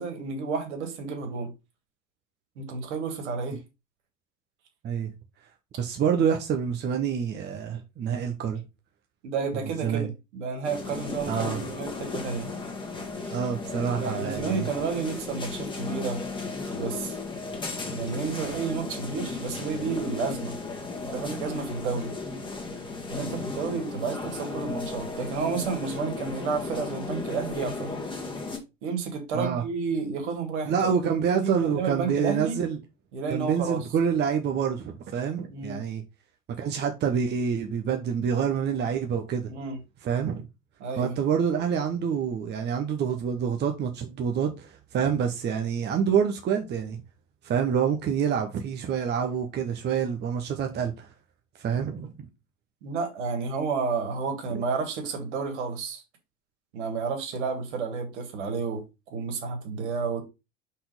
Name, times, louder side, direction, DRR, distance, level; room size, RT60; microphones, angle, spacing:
voice 1, 0.0-1.5 2.6-3.6 9.2-12.5 14.0-16.2 16.7-17.2 17.9-20.5 21.1-22.1 23.1-27.9 28.8-30.9 31.2-32.6 33.1-33.8 35.5-35.8 39.5-39.8 40.8-41.2 52.8-56.0 56.7-58.8 59.1-60.2, right 5 dB, 60° right, 2.5 m, -31 dB
voice 2, 5.8-8.6 9.8-10.1 11.3-11.8 13.3-14.7 29.3-29.6 30.7-32.8 33.3-36.0 36.6-39.5 40.0-40.5 41.0-47.0 47.4-51.1 51.6-52.1, right 7 dB, 25° right, 1.0 m, -27 dB
sound 1, 10.6-28.6, left 3 dB, 10° left, 1.9 m, -35 dB
5.8 x 4.3 x 5.3 m
figure-of-eight pair, 85°, 39 cm